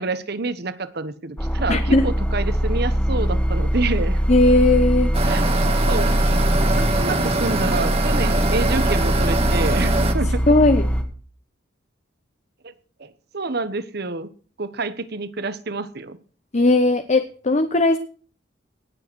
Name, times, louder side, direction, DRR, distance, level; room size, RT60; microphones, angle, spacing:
voice 1, 0.0-4.2 5.3-5.4 5.8-6.1 6.7-10.5 12.6-12.7 13.0-14.3 14.6-16.2, right 3 dB, 60° right, 13 dB, 1.2 m, -28 dB
sound 1, 1.4-11.0, equal, 10° left, 2.0 m, -22 dB
voice 2, 1.7-2.1 4.3-5.1 10.5-10.8 16.5-18.0, left 2 dB, 40° left, 9 dB, 1.0 m, -17 dB
sound 2, 5.1-10.1, right 2 dB, 35° right, 1.9 m, -23 dB
19.0 x 7.8 x 6.3 m, 0.42 s
head